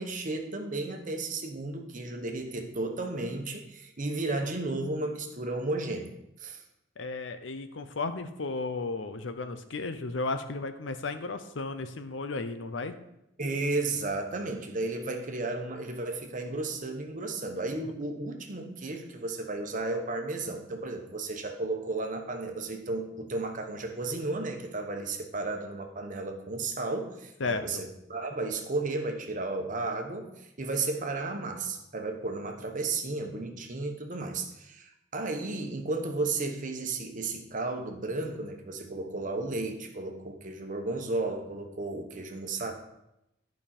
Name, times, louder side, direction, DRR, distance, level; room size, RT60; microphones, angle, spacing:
voice 1, 0.0-6.1 6.4-6.6 13.4-42.7, right 2 dB, 40° right, 4 dB, 1.0 m, -33 dB
voice 2, 7.0-12.9 17.8-17.9 27.4-27.8, left 3 dB, 70° left, 10 dB, 0.7 m, -34 dB
11.0 x 5.3 x 4.3 m, 0.86 s
head